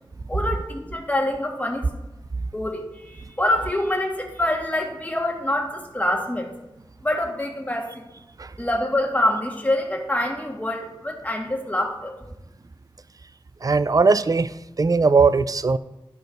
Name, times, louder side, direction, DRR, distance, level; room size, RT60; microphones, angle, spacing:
voice 1, 0.3-1.9 2.5-6.5 7.0-7.9 8.6-12.2, left 1 dB, 15° left, 1 dB, 1.5 m, -25 dB
voice 2, 13.6-15.8, right 4 dB, 40° right, 15 dB, 0.4 m, -19 dB
12.0 x 4.0 x 5.1 m, 0.96 s
wide cardioid pair, 60°, 9 cm